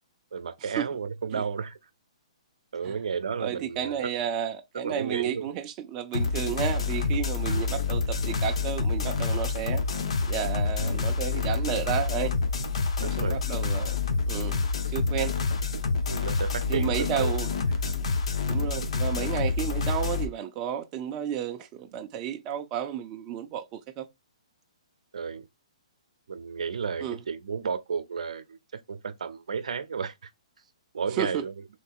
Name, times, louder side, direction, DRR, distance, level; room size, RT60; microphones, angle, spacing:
voice 1, 0.3-1.8 2.7-4.1 4.7-5.5 7.5-7.7 13.0-13.4 15.1-15.2 16.1-17.3 19.6-19.7 25.1-25.5 26.3-30.3 30.9-31.5, right 6 dB, 80° right, 0.6 m, -33 dB
voice 2, 3.4-9.8 10.3-12.3 13.0-14.0 14.3-14.6 14.9-15.3 16.7-17.5 18.5-24.1 27.0-27.2 31.2-31.4, right 9 dB, 20° right, 0.4 m, -32 dB
sound 1, 6.1-20.3, left 4 dB, 65° left, 0.9 m, -27 dB
3.2 x 2.8 x 4.4 m
hypercardioid pair, 170°, 4 cm